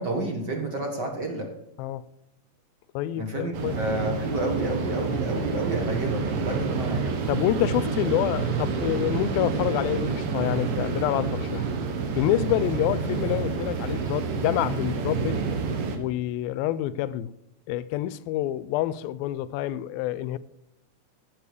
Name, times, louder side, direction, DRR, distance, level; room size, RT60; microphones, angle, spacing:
voice 1, 0.0-1.5 3.1-7.2, right 1 dB, 45° right, 1.5 m, -30 dB
voice 2, 2.9-3.8 7.3-11.7 12.2-15.4 16.0-17.3 17.7-20.4, left 14 dB, 90° left, 2.4 m, -27 dB
sound 1, 3.5-16.0, right 5 dB, 70° right, 3.0 m, -28 dB
15.0 x 7.4 x 4.9 m
omnidirectional pair, 4.1 m